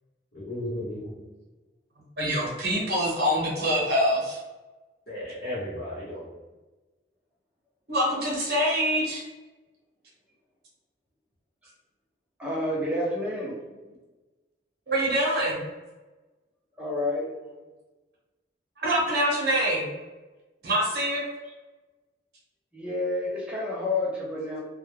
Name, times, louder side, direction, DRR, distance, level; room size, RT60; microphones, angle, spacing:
voice 1, 0.3-1.2 5.1-6.4, left 1 dB, 55° left, -8 dB, 1.0 m, -34 dB
voice 2, 2.2-4.4 7.9-9.2 14.9-15.6 18.8-19.9 20.6-21.2, equal, 55° right, -4 dB, 0.9 m, -25 dB
voice 3, 12.4-13.5 16.8-17.3 22.7-24.6, left 2 dB, 5° right, -5 dB, 0.6 m, -29 dB
2.3 x 2.1 x 3.2 m, 1.2 s
head